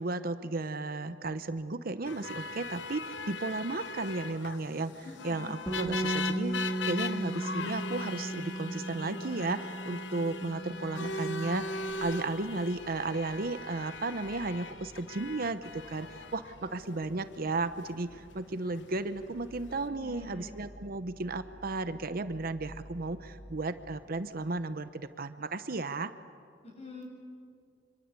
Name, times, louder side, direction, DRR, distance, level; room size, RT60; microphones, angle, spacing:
voice 1, 0.0-11.7 12.0-26.1, right 2 dB, 55° right, 12 dB, 0.9 m, -34 dB
sound 1, 2.0-19.9, left 3 dB, 75° left, 1.1 m, -40 dB
voice 2, 5.0-5.6 19.9-20.5 26.6-27.0, left 2 dB, 35° left, 1 dB, 7.1 m, -46 dB
Bass guitar, 5.7-11.9, right 2 dB, 10° left, 4.2 m, -36 dB
sound 2, 10.6-24.2, equal, 15° right, 3.9 m, -54 dB
26.0 x 25.0 x 8.3 m, 2.2 s
head